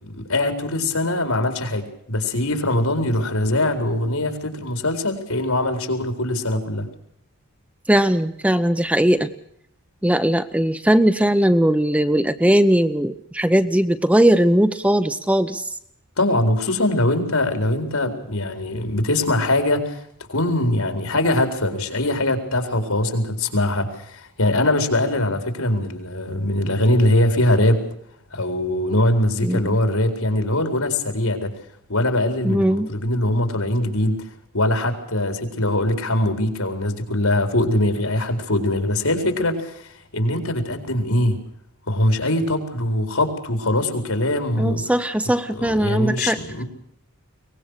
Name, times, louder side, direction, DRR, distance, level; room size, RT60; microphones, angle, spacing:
voice 1, 0.0-6.9 16.2-20.0 20.3-27.8 28.3-31.6 31.9-34.3 34.5-41.4 41.9-44.8 45.5-46.6, left 1 dB, 75° left, 6 dB, 4.4 m, -22 dB
voice 2, 7.9-9.3 10.0-15.6 29.4-29.8 32.4-32.9 44.6-46.4, right 1 dB, 5° right, 10 dB, 0.8 m, -19 dB
23.0 x 20.0 x 6.6 m, 0.71 s
head